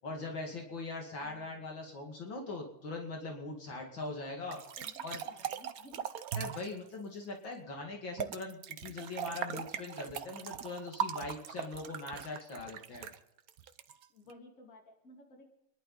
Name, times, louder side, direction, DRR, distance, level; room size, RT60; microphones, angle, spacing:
voice 1, 0.0-4.6 5.0-5.2 6.4-13.1, left 3 dB, 60° left, 1 dB, 3.0 m, -41 dB
voice 2, 1.2-1.5 4.7-6.0 14.1-15.5, left 1 dB, 40° left, 0 dB, 3.0 m, -56 dB
sound 1, 4.5-6.8 8.2-14.3, right 8 dB, 60° right, 1.0 m, -39 dB
28.5 x 11.5 x 4.1 m, 0.86 s
omnidirectional pair, 2.3 m